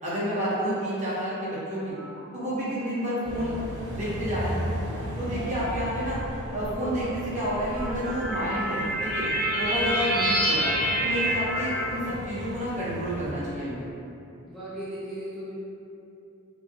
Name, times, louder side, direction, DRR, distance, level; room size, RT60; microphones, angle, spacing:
voice 1, 0.0-1.9 2.3-3.5 3.9-4.8 5.2-6.2 6.5-9.3 9.5-10.7 11.0-13.9, equal, 30° right, -9 dB, 1.0 m, -30 dB
sound 1, 1.9-2.6 3.4-3.6 4.7-4.8 7.0-12.0, right 1 dB, 35° left, 1.0 m, -28 dB
sound 2, 3.2-13.3, equal, 55° right, 0.8 m, -36 dB
voice 2, 14.5-15.5, equal, ahead, -13 dB, 0.8 m, -36 dB
5.1 x 2.8 x 2.9 m, 2.7 s
head